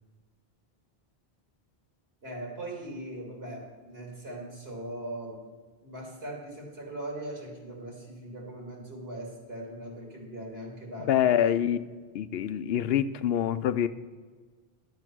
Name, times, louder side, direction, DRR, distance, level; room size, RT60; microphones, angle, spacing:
voice 1, 2.2-5.4 5.8-11.6, right 1 dB, 75° right, -1 dB, 2.8 m, -40 dB
voice 2, 11.1-11.8 12.1-13.9, left 10 dB, 75° left, 13 dB, 0.8 m, -25 dB
11.0 x 7.7 x 6.0 m, 1.5 s
omnidirectional pair, 1.0 m